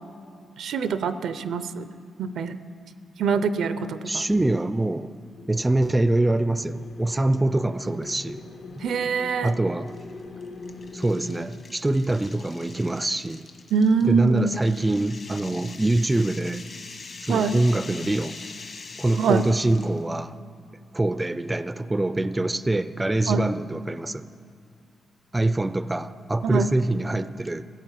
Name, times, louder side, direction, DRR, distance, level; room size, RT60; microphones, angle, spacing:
voice 1, 0.6-1.9 2.2-2.6 3.2-4.2 8.8-9.5 13.7-14.5 17.3-17.6 19.2-19.4 23.3-23.4 26.4-26.7, right 5 dB, 80° right, 12 dB, 0.6 m, -24 dB
voice 2, 4.1-5.1 5.5-8.4 9.4-10.0 10.9-13.5 14.1-16.7 17.2-18.4 19.0-20.4 20.9-24.3 25.3-27.6, right 2 dB, 15° right, 13 dB, 0.4 m, -24 dB
sound 1, 5.3-11.5, left 3 dB, 75° left, 1.3 m, -42 dB
sound 2, 7.9-8.3 8.8-8.9 9.9-20.0, left 4 dB, 50° left, 1.4 m, -43 dB
16.0 x 9.2 x 7.4 m, 2.5 s
cardioid pair, 105°, 0 cm